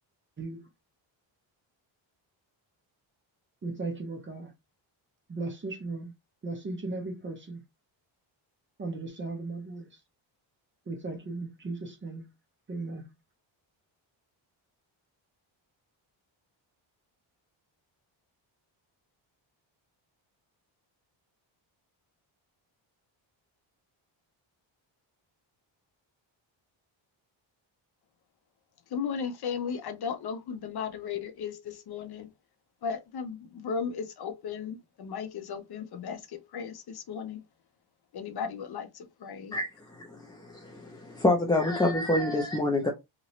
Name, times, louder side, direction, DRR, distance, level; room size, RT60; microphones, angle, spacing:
voice 1, 0.4-0.7 3.6-4.5 5.3-6.1 6.4-7.6 8.8-9.9 10.9-12.3 12.7-13.1, right 3 dB, 25° right, 0.6 m, -36 dB
voice 2, 28.9-32.3 32.8-37.4 38.1-39.6, left 6 dB, 55° left, 0.6 m, -36 dB
voice 3, 39.5-42.9, left 1 dB, 10° left, 0.3 m, -27 dB
2.9 x 2.5 x 3.0 m
cardioid pair, 140°, 48 cm